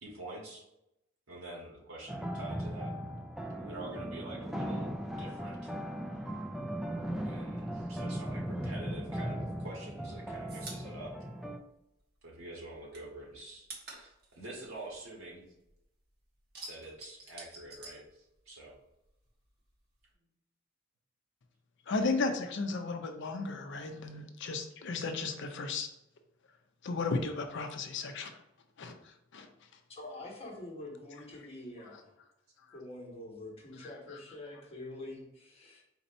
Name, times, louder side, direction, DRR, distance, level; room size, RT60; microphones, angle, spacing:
voice 1, 0.0-0.6 1.3-2.9 3.6-5.7 7.2-11.1 12.2-15.4 16.6-18.7, right 2 dB, 90° right, -3 dB, 1.5 m, -46 dB
sound 1, 2.1-11.6, equal, ahead, 0.3 m, -38 dB
sound 2, 9.4-12.2 12.5-15.8 16.1-18.7 19.0-20.1, right 3 dB, 50° right, 1.2 m, -50 dB
voice 2, 21.9-25.9 26.8-28.4 28.8-28.9 29.3-29.5 33.8-33.9, left 3 dB, 60° left, 6 dB, 0.6 m, -34 dB
voice 3, 29.9-32.1 32.7-35.8, left 2 dB, 30° left, -3 dB, 1.3 m, -45 dB
4.4 x 2.8 x 4.1 m, 0.85 s
head